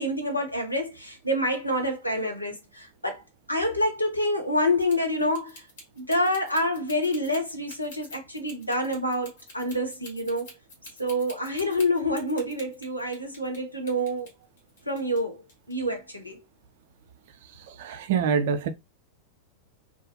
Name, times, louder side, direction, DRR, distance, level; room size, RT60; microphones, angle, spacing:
voice 1, 0.0-3.2 3.5-5.6 6.0-10.5 11.0-14.3 14.9-15.4 15.7-16.4, left 1 dB, 85° left, 0.7 m, -27 dB
sound 1, 4.8-13.6 13.9-15.2 15.5-15.7, left 2 dB, 60° left, 1.2 m, -47 dB
voice 2, 17.7-18.7, right 6 dB, 55° right, 0.4 m, -25 dB
2.4 x 2.3 x 2.7 m
figure-of-eight pair, 90°, 0 cm